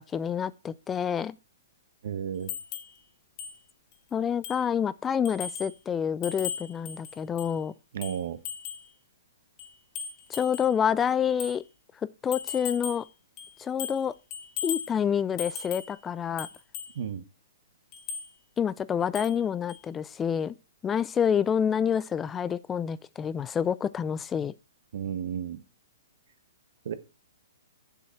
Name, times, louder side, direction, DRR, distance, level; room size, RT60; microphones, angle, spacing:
voice 1, 0.0-1.3 4.1-7.7 10.3-11.6 12.2-13.0 13.6-14.1 14.6-16.5 18.6-20.5 20.8-24.5, left 8 dB, 15° left, 0.3 m, -28 dB
voice 2, 2.0-2.5 7.9-8.4 16.9-17.2 24.9-25.6 26.8-26.9, right 8 dB, 65° right, 1.1 m, -32 dB
sound 1, 2.5-2.9 3.4-3.5 3.9-4.0 4.4-4.7 5.2-5.8 6.2-7.6 8.0-8.9 9.6-10.7 11.4-11.6 12.3-13.1 13.4-14.1 14.3-14.9 15.4-15.9 16.4-16.9 17.9-18.3 19.1-19.4 19.7-19.8, left 8 dB, 35° left, 1.6 m, -37 dB
7.5 x 6.9 x 4.4 m
hypercardioid pair, 130°, 0 cm